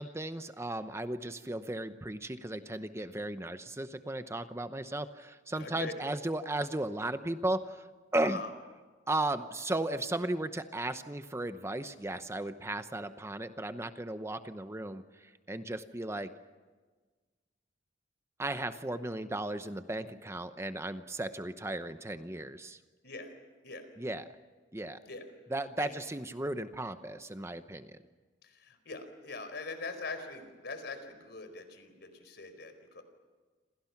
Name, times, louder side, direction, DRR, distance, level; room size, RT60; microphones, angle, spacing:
voice 1, 0.0-7.9 8.1-8.4 9.1-16.3 18.4-22.8 24.0-24.2 24.7-25.0 25.5-28.0, right 1 dB, 15° right, 10 dB, 0.8 m, -35 dB
voice 2, 5.5-5.9 8.2-8.5 23.0-23.4 23.6-23.9 25.0-25.3 25.8-25.9 28.4-33.0, left 3 dB, 65° left, 9 dB, 4.5 m, -42 dB
28.5 x 27.5 x 5.9 m, 1.4 s
head